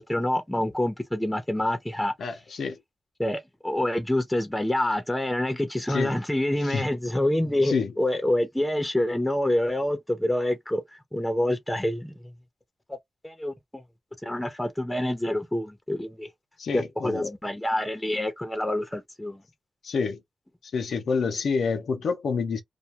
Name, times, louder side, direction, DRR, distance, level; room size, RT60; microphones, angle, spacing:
voice 1, 0.0-2.1 3.2-10.8 11.1-12.1 13.2-13.8 14.2-16.3 16.7-19.4, left 1 dB, 10° left, 0.8 m, -27 dB
voice 2, 2.2-2.8 5.9-6.2 6.6-6.9 7.6-7.9 16.6-17.3 19.8-20.2 20.6-22.6, left 5 dB, 80° left, 0.6 m, -28 dB
2.3 x 2.3 x 2.8 m
cardioid pair, 60°, 0 cm